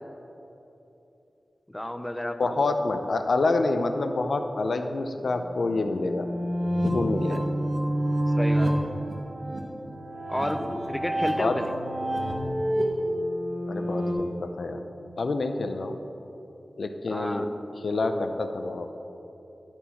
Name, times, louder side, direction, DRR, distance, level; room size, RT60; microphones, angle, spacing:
voice 1, 1.7-2.6 7.3-7.4 8.4-8.7 10.3-11.7 17.1-17.5, left 1 dB, 10° left, 7 dB, 0.5 m, -31 dB
voice 2, 2.4-6.3 6.8-7.5 11.4-11.6 13.7-14.8 15.2-16.0 16.8-17.5 17.8-18.9, left 3 dB, 70° left, 7 dB, 0.5 m, -27 dB
sound 1, 5.3-14.1, equal, 60° right, 1.2 m, -28 dB
11.0 x 4.4 x 5.7 m, 3.0 s
wide cardioid pair, 95°, 0 cm